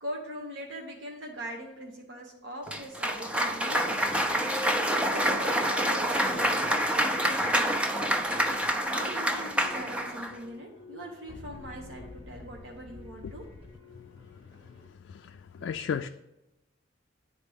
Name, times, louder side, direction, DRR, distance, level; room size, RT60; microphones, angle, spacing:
voice 1, 0.0-4.1 5.1-7.9 8.9-13.5, equal, 85° right, 0 dB, 1.1 m, -41 dB
Cheering / Applause, 2.7-10.4, equal, 5° right, 0.5 m, -27 dB
sound 1, 9.5-14.9, left 3 dB, 30° right, 1.3 m, -49 dB
voice 2, 15.1-16.1, left 7 dB, 70° left, 6 dB, 0.3 m, -34 dB
9.8 x 4.1 x 3.5 m, 0.96 s
head